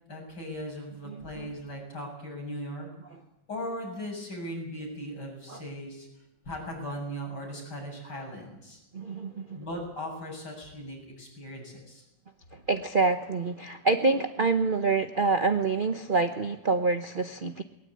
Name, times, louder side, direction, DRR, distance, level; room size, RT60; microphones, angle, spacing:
voice 1, 0.1-2.9 3.5-6.1 6.4-8.8 9.5-12.0, equal, 60° left, 0 dB, 7.8 m, -38 dB
voice 2, 1.1-1.5 3.1-3.2 5.5-5.6 8.1-8.2 8.9-9.6 12.5-17.6, right 3 dB, 40° right, 8 dB, 0.8 m, -27 dB
21.0 x 19.0 x 8.7 m, 0.91 s
omnidirectional pair, 2.1 m